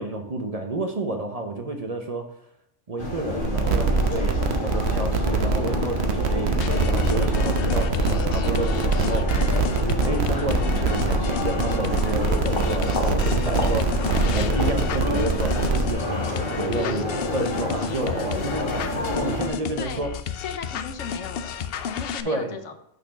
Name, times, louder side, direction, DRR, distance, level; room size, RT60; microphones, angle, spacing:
voice 1, 0.0-2.4 2.9-9.5 9.8-20.2 22.2-22.7, right 2 dB, 40° right, 5 dB, 0.7 m, -30 dB
sound 1, 3.0-19.5, left 2 dB, 45° left, 1.5 m, -29 dB
sound 2, 3.4-15.9, right 3 dB, 65° right, 1.0 m, -24 dB
sound 3, 6.6-22.2, left 7 dB, 65° left, 0.7 m, -32 dB
voice 2, 19.8-22.7, left 6 dB, 80° left, 8 dB, 1.2 m, -37 dB
6.2 x 4.3 x 5.7 m, 0.76 s
omnidirectional pair, 1.3 m